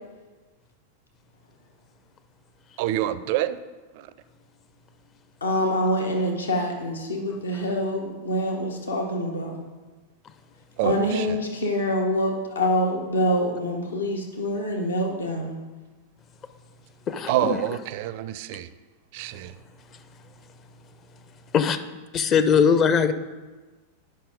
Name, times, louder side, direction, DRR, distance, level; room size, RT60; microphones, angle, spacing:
voice 1, 2.8-3.6 3.9-4.1 10.8-11.4 17.3-18.7 19.1-19.5, right 13 dB, 50° right, 15 dB, 0.4 m, -27 dB
voice 2, 5.4-9.6 10.8-15.6, left 1 dB, 75° left, 1 dB, 1.1 m, -25 dB
voice 3, 17.1-17.6 21.5-21.8 22.1-23.1, left 6 dB, 30° left, 10 dB, 0.6 m, -20 dB
9.1 x 5.7 x 5.0 m, 1.3 s
figure-of-eight pair, 90°, 0 cm